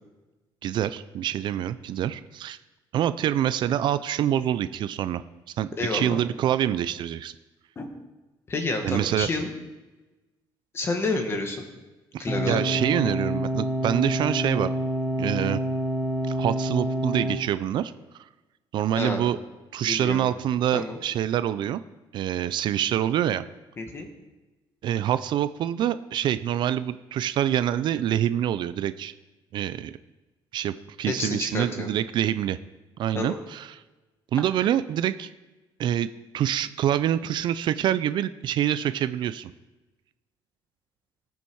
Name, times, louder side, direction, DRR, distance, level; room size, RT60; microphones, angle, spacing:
voice 1, 0.6-2.6 2.9-5.2 5.6-7.3 8.8-9.3 12.1-14.7 15.2-15.6 16.3-17.9 18.7-19.4 19.7-21.8 22.1-23.4 24.8-29.1 29.5-29.9 30.5-32.6 33.0-33.8 34.3-35.3 35.8-36.1 36.3-39.5, right 11 dB, 55° right, 14 dB, 0.4 m, -26 dB
voice 2, 5.7-6.2 7.7-7.9 8.5-9.5 10.7-11.7 12.2-12.7 19.0-19.3 19.8-20.3 20.7-21.0 23.8-24.1 31.1-31.9 33.1-33.4, left 3 dB, 25° left, 4 dB, 1.7 m, -29 dB
sound 1, 12.3-17.3, right 1 dB, ahead, 1.3 m, -27 dB
18.5 x 7.1 x 4.7 m, 1.1 s
cardioid pair, 150°, 9 cm